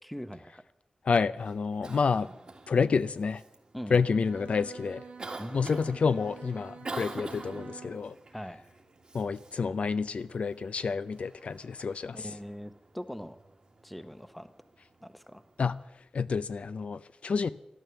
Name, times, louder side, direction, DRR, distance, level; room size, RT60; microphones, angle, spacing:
voice 1, 0.0-0.6 3.7-4.1 5.4-5.8 8.3-8.6 12.1-13.4 13.8-14.5 15.0-15.4, equal, 5° left, 11 dB, 0.8 m, -41 dB
voice 2, 1.0-2.3 2.7-3.4 3.9-5.0 5.5-8.1 9.1-12.2 15.6-15.8 16.1-17.5, left 5 dB, 65° left, 13 dB, 0.5 m, -29 dB
Cough, 1.4-15.8, right 3 dB, 40° right, 1.7 m, -48 dB
Bowed string instrument, 3.9-8.1, right 5 dB, 65° right, 1.5 m, -48 dB
12.5 x 12.5 x 6.9 m, 0.88 s
wide cardioid pair, 120°, 2 cm